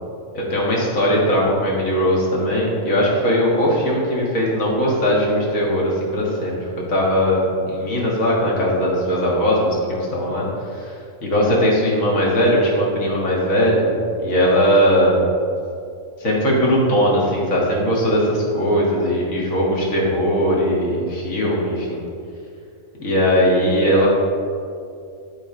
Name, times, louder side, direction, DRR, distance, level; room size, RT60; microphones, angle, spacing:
voice 1, 0.3-6.6 6.9-10.5 10.8-10.9 11.2-13.8 14.2-15.3 16.2-22.0 23.0-24.1, equal, 80° left, -3 dB, 2.0 m, -19 dB
10.5 x 3.9 x 5.0 m, 2.4 s
omnidirectional pair, 1.4 m